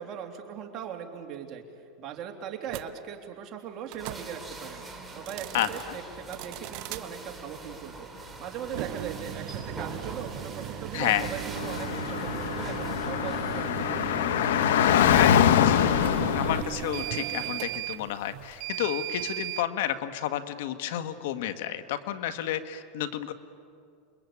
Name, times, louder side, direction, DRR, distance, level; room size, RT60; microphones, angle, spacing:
voice 1, 0.0-1.6 2.0-4.8 5.1-14.3, right 7 dB, 40° right, 3 dB, 3.0 m, -39 dB
sound 1, 2.7-2.9 3.9-4.2 5.1-5.8 6.3-7.0 8.6-19.7, right 14 dB, 55° right, 0.8 m, -37 dB
sound 2, 4.0-13.6, right 2 dB, 5° right, 3.8 m, -43 dB
voice 2, 10.9-11.3 15.0-15.8 16.3-23.3, left 11 dB, 75° left, 10 dB, 1.5 m, -31 dB
Car / Traffic noise roadway noise, 11.6-16.6, left 9 dB, 90° left, 1.1 m, -24 dB
28.0 x 22.0 x 8.6 m, 2.3 s
supercardioid pair, 140°, 0 cm